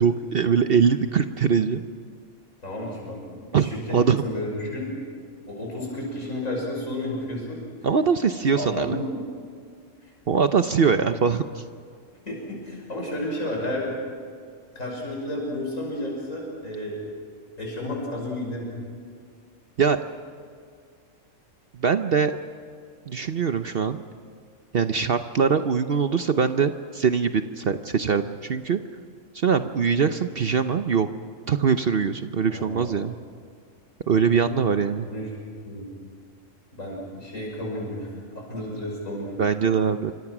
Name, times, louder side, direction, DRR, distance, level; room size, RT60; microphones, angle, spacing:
voice 1, 0.0-1.8 3.5-4.2 7.8-9.0 10.3-11.6 19.8-20.0 21.8-22.3 23.1-24.0 24.7-28.8 29.3-31.1 31.5-33.2 34.1-35.1 39.4-40.1, right 6 dB, 50° right, 9 dB, 0.9 m, -22 dB
voice 2, 2.6-5.0 5.5-7.6 8.5-9.2 10.0-10.1 12.3-13.9 14.7-17.0 17.6-18.7 32.5-33.0 34.3-34.4 35.0-35.3 35.6-35.9 36.7-38.1 38.3-39.4, left 1 dB, 85° left, -2 dB, 6.6 m, -32 dB
28.0 x 25.0 x 6.1 m, 2.2 s
omnidirectional pair, 1.3 m